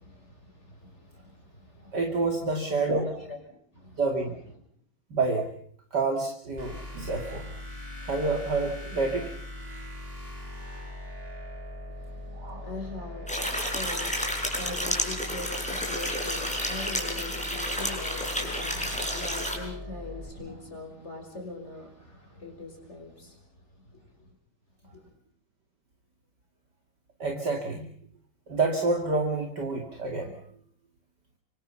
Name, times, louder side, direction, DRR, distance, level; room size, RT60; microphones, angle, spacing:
voice 1, 0.0-2.0 2.5-2.6 3.0-4.0 12.0-23.4 23.9-24.0 24.8-25.1, left 2 dB, 30° left, 3 dB, 6.2 m, -42 dB
voice 2, 1.9-3.1 4.0-4.4 5.1-5.5 5.9-7.5 8.1-9.3 12.3-12.7 27.2-27.9 28.5-30.3, right 3 dB, 55° right, 2 dB, 3.1 m, -28 dB
sound 1, 6.6-20.3, left 1 dB, 20° right, 5.9 m, -40 dB
sound 2, 13.3-19.6, equal, 5° left, 5.8 m, -31 dB
26.5 x 25.0 x 5.7 m, 0.62 s
omnidirectional pair, 2.3 m